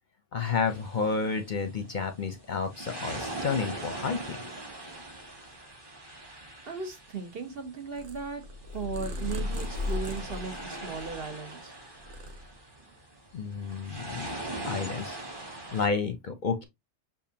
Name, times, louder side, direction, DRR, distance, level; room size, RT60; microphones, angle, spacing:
voice 1, 0.3-4.4 13.3-14.4 14.7-15.2 15.7-16.7, left 5 dB, 50° left, 0.7 m, -30 dB
sound 1, 0.6-15.9, right 1 dB, 20° right, 1.2 m, -42 dB
voice 2, 6.7-8.4 8.7-11.8, right 4 dB, 55° right, 1.2 m, -37 dB
Purr, 7.9-11.5 11.9-12.9, left 2 dB, 75° right, 1.2 m, -36 dB
6.9 x 2.5 x 2.8 m
omnidirectional pair, 1.2 m